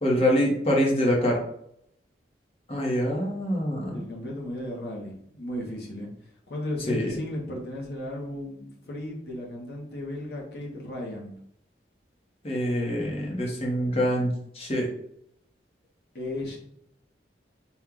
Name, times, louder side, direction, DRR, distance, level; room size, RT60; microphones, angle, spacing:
voice 1, 0.0-1.4 2.7-4.0 6.9-7.1 12.4-14.9, equal, 35° left, -1 dB, 1.0 m, -25 dB
voice 2, 3.9-6.1 6.5-11.4 16.1-16.6, left 1 dB, 60° left, -2 dB, 1.0 m, -35 dB
4.4 x 2.4 x 3.7 m, 0.72 s
head